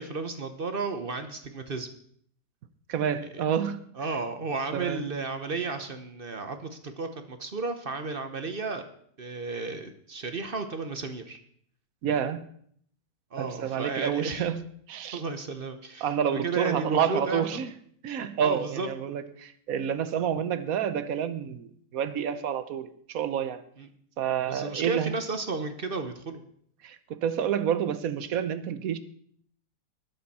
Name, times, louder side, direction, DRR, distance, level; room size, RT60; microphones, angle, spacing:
voice 1, 0.0-1.9 3.3-3.4 4.0-8.9 9.2-11.4 13.3-14.5 15.1-17.4 18.4-19.2 23.8-23.9 24.5-26.4, right 3 dB, 40° right, 8 dB, 1.0 m, -33 dB
voice 2, 2.9-3.8 4.7-5.0 12.0-12.5 13.4-14.6 14.9-15.2 16.0-17.7 18.0-23.6 24.2-25.1 26.8-29.0, right 8 dB, 65° right, 13 dB, 1.2 m, -29 dB
19.5 x 7.1 x 4.2 m, 0.63 s
omnidirectional pair, 1.7 m